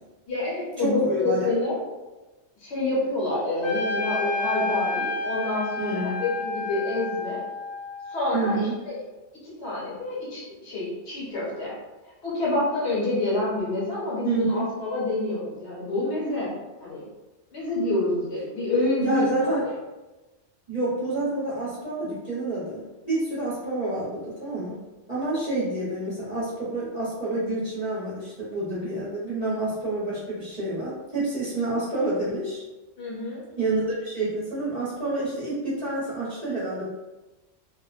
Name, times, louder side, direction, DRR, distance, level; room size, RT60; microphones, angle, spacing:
voice 1, 0.3-1.8 2.6-7.4 8.1-8.9 9.4-11.7 12.2-16.5 16.8-17.0 17.5-19.7 25.5-25.6 33.0-33.4, left 2 dB, 70° left, -7 dB, 1.2 m, -27 dB
voice 2, 0.8-1.5 5.8-6.1 8.3-8.8 14.2-14.7 19.0-19.6 20.7-24.8 25.1-32.6 33.6-36.9, right 2 dB, 40° right, -9 dB, 0.7 m, -28 dB
Trumpet, 3.6-8.3, left 3 dB, 30° left, 0.7 m, -30 dB
2.5 x 2.1 x 2.4 m, 1.1 s
omnidirectional pair, 1.2 m